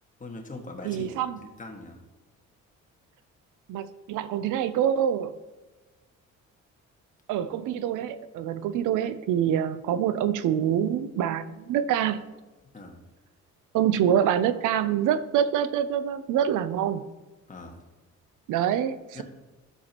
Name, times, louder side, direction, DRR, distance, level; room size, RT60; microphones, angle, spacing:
voice 1, 0.2-1.2 1.6-2.0 12.7-13.0 17.5-17.8 19.1-19.2, left 2 dB, 25° left, 1.6 m, -41 dB
voice 2, 0.8-1.4 3.7-5.3 7.3-12.2 13.7-17.0 18.5-19.2, right 9 dB, 85° right, 0.6 m, -26 dB
12.5 x 7.0 x 2.9 m
cardioid pair, 90°, 30 cm